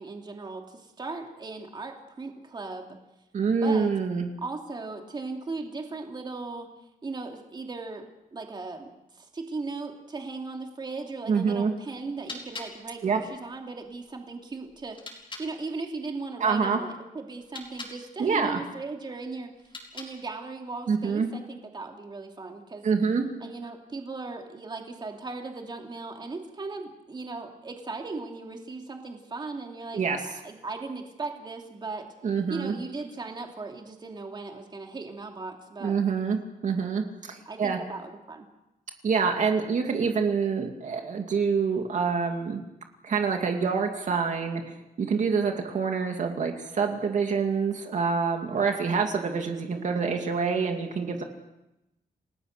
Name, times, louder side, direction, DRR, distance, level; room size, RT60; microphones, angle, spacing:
voice 1, 0.0-3.0 3.5-3.9 4.4-6.7 7.0-8.0 8.3-19.5 19.9-22.9 23.4-30.0 30.4-32.1 32.5-36.0 37.5-38.5, right 3 dB, 30° right, 2 dB, 2.8 m, -37 dB
voice 2, 3.3-4.3 11.3-11.7 13.0-13.2 16.4-16.8 18.2-18.6 20.9-21.3 22.8-23.2 29.9-30.3 32.2-32.7 35.8-36.4 36.6-37.8 39.0-42.6 43.0-51.2, right 5 dB, 60° right, 3 dB, 2.5 m, -26 dB
sound 1, 12.0-15.5 17.3-18.0 19.5-20.4, left 3 dB, 35° left, 4.7 m, -44 dB
29.5 x 19.0 x 6.6 m, 0.92 s
wide cardioid pair, 155°, 15 cm